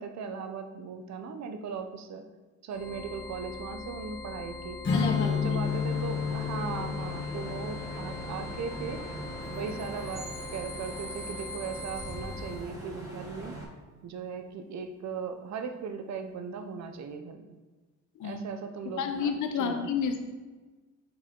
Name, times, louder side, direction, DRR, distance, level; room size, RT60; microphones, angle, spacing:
voice 1, 0.0-2.2 2.6-4.8 5.2-9.0 9.5-13.6 14.0-17.5 18.2-19.3 19.6-19.9, right 5 dB, 65° right, 7 dB, 0.9 m, -38 dB
sound 1, 2.7-12.7, left 3 dB, 10° left, 1.4 m, -42 dB
Strum, 4.8-10.2, left 6 dB, 40° left, 2.1 m, -32 dB
voice 2, 4.9-5.3 18.2-18.4 19.0-20.2, left 6 dB, 75° left, 5 dB, 0.8 m, -30 dB
Bus / Idling / Screech, 5.6-13.6, right 2 dB, 10° right, 1.9 m, -41 dB
7.8 x 4.6 x 3.7 m, 1.3 s
cardioid pair, 90°, 30 cm